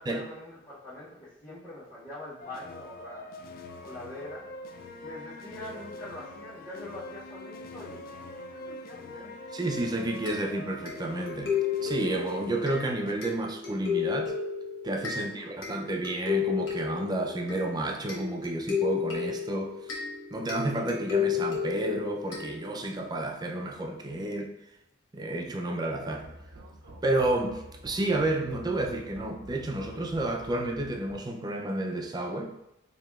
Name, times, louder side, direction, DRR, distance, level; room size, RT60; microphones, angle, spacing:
voice 1, 0.0-3.4 3.8-4.4 5.0-8.1 8.5-9.3 15.1-15.9, left 1 dB, 25° left, -13 dB, 1.4 m, -44 dB
sound 1, 2.4-13.1, left 1 dB, 50° left, 0.3 m, -44 dB
voice 2, 9.5-11.5 11.8-14.4 14.8-19.9 20.3-24.5 25.1-26.3 27.0-32.5, right 2 dB, 20° right, 2 dB, 0.4 m, -31 dB
sound 2, 10.3-23.0, left 7 dB, 90° left, 1.0 m, -33 dB
sound 3, 26.0-31.2, right 1 dB, 85° right, 0.6 m, -47 dB
4.7 x 2.8 x 2.3 m, 0.88 s
head